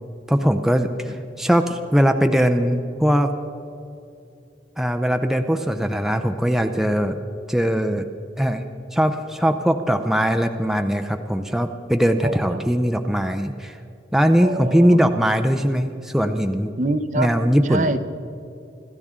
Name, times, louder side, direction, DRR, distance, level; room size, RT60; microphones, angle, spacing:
voice 1, 0.3-3.3 4.8-7.2 7.5-8.1 8.4-8.7 8.9-13.8 14.1-16.7 17.1-17.9, equal, ahead, 6 dB, 0.6 m, -20 dB
voice 2, 12.2-12.7 14.4-15.0 16.8-17.3 17.7-18.2, right 2 dB, 45° right, 11 dB, 0.7 m, -25 dB
26.0 x 13.5 x 3.7 m, 2.6 s
head